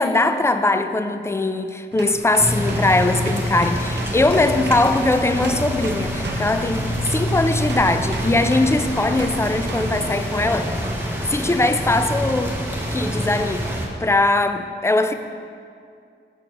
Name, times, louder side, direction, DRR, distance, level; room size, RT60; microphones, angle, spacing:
voice 1, 0.0-10.7 11.3-12.6 12.9-13.7 14.0-15.1, left 2 dB, 15° left, 8 dB, 0.3 m, -20 dB
sound 1, 1.9-7.2 7.7-10.2 10.8-11.1, right 4 dB, 60° right, 0.5 m, -37 dB
sound 2, 2.4-13.9, equal, 10° right, 1.0 m, -26 dB
6.1 x 4.3 x 6.5 m, 2.3 s
wide cardioid pair, 95°, 20 cm